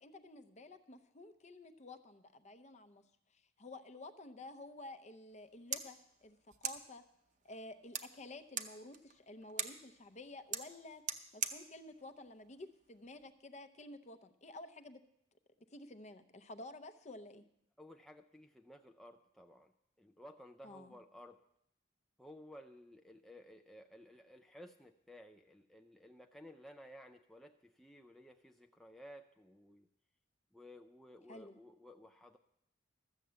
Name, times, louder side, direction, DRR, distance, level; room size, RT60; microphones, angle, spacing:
voice 1, 0.0-3.0 3.3-7.0 7.4-11.0 11.3-15.0 15.7-17.4 20.6-21.0 31.3-31.6, left 2 dB, 35° left, 8 dB, 0.7 m, -52 dB
sound 1, 5.3-13.3, right 7 dB, 40° right, 0.7 m, -45 dB
voice 2, 17.8-19.7 20.0-21.4 22.2-29.9 30.5-32.4, equal, ahead, 3 dB, 0.4 m, -56 dB
13.5 x 6.9 x 7.5 m, 0.76 s
head